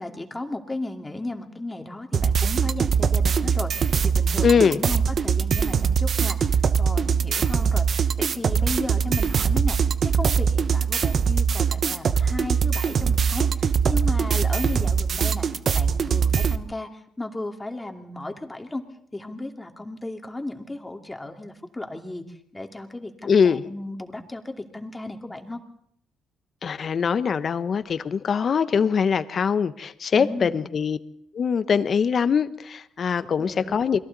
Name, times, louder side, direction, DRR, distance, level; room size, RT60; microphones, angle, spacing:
voice 1, 0.0-15.5 15.7-18.8 19.1-22.2 22.5-25.6 30.1-30.7 33.2-33.8, left 2 dB, 15° left, 4 dB, 2.6 m, -35 dB
sound 1, 2.1-16.6, right 6 dB, 55° right, 1.0 m, -22 dB
voice 2, 4.4-4.8 23.2-23.6 26.6-31.0 31.3-34.0, left 6 dB, 50° left, 13 dB, 1.1 m, -22 dB
28.5 x 22.0 x 4.1 m, 0.67 s
cardioid pair, 90°, 0 cm